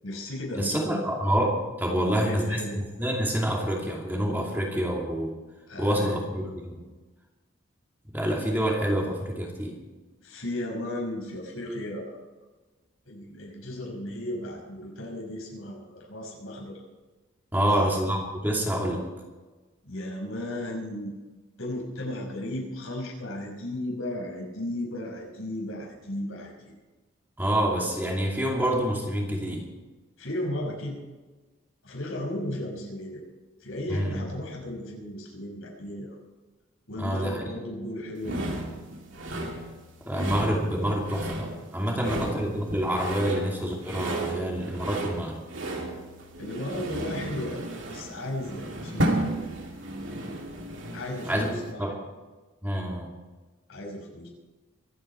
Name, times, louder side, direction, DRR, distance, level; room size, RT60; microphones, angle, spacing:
voice 1, 0.0-1.0 1.8-2.8 5.7-6.2 10.2-12.2 13.1-16.8 17.5-17.8 19.8-21.1 21.6-26.7 30.2-31.0 31.8-33.2 33.6-36.2 36.9-38.3 41.9-42.3 46.4-49.1 50.9-51.9 53.7-54.3, left 1 dB, 85° left, -1 dB, 6.0 m, -35 dB
voice 2, 0.6-2.6 3.0-5.3 5.8-6.8 8.1-9.8 17.5-19.0 27.4-29.6 33.9-34.3 37.0-37.4 40.0-45.4 51.2-51.5 51.8-52.0 52.6-53.1, equal, 10° right, -2 dB, 2.5 m, -27 dB
sound 1, 38.2-51.7, right 1 dB, 65° right, 2.4 m, -34 dB
24.0 x 9.7 x 4.6 m, 1.2 s
head